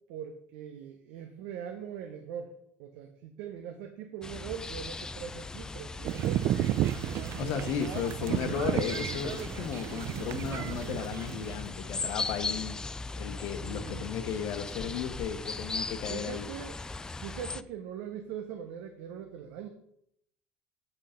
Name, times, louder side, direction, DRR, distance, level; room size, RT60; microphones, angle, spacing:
voice 1, 0.1-2.5 2.8-6.5 7.3-7.7 13.6-14.1 16.1-16.8 17.1-19.7, right 8 dB, 80° right, 5 dB, 0.9 m, -41 dB
sound 1, 4.2-17.6, left 3 dB, 15° left, 0.4 m, -39 dB
sound 2, 6.0-11.7, right 13 dB, 55° right, 0.4 m, -32 dB
voice 2, 7.4-12.9 13.2-16.4, left 8 dB, 70° left, 8 dB, 0.9 m, -35 dB
8.4 x 5.5 x 5.0 m, 0.71 s
supercardioid pair, 110°, 5 cm